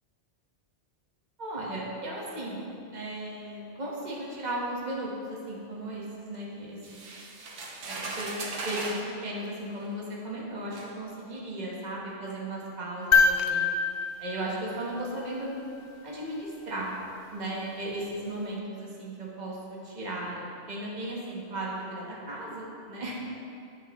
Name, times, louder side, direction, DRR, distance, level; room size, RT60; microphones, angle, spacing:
voice 1, 1.4-2.6 2.9-7.0 7.8-8.3 8.6-13.7 14.2-15.5 16.0-16.9 17.3-23.1, right 1 dB, 40° right, -5 dB, 1.5 m, -36 dB
sound 1, 6.8-9.1 10.0-10.1 10.7-10.9, right 3 dB, 85° right, 1.3 m, -37 dB
sound 2, 13.1-15.4 17.5-17.6, left 5 dB, 60° left, 0.7 m, -25 dB
10.0 x 7.5 x 3.2 m, 2.4 s
omnidirectional pair, 1.2 m